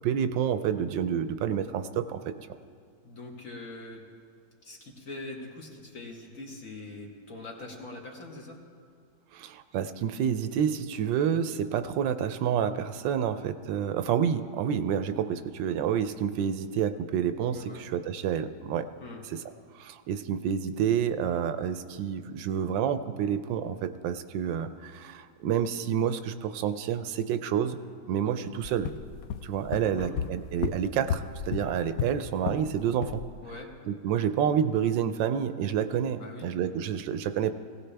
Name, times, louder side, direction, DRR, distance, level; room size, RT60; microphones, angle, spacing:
voice 1, 0.0-2.2 9.3-18.9 19.3-19.4 19.7-27.8 28.1-28.9 29.4-33.2 33.9-37.5, right 8 dB, 80° right, 10 dB, 1.3 m, -29 dB
voice 2, 3.0-4.1 4.6-8.6 17.5-17.9 19.0-19.2 29.8-30.1 33.4-33.7 36.2-36.5, left 2 dB, 45° left, 0 dB, 1.9 m, -43 dB
sound 1, 28.6-32.7 33.0-33.3, left 8 dB, 75° left, 0.8 m, -34 dB
18.5 x 16.5 x 3.4 m, 2.2 s
omnidirectional pair, 2.0 m